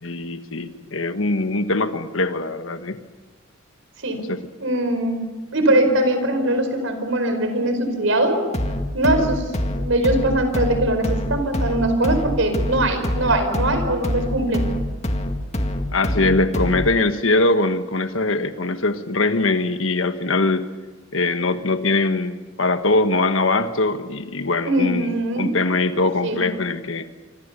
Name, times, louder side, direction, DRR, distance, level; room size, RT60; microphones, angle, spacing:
voice 1, 0.0-3.0 4.1-4.4 15.9-20.7 21.1-27.1, left 2 dB, 80° left, 9 dB, 1.4 m, -22 dB
voice 2, 4.6-5.2 5.5-8.4 8.9-9.4 9.7-14.7 24.6-25.5 26.2-26.5, right 1 dB, 80° right, 7 dB, 5.0 m, -21 dB
sound 1, 8.5-17.0, left 1 dB, 35° left, 2.0 m, -26 dB
27.0 x 25.0 x 6.9 m, 1.2 s
head